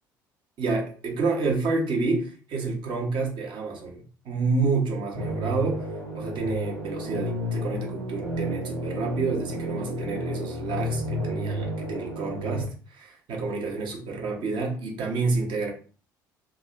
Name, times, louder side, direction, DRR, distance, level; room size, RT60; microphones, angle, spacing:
voice 1, 0.6-5.9 6.1-15.7, right 3 dB, 50° right, 0 dB, 0.8 m, -29 dB
sound 1, 5.1-12.6, equal, 80° right, 0.8 m, -31 dB
2.8 x 2.0 x 2.4 m, 0.38 s
figure-of-eight pair, 50°, 11 cm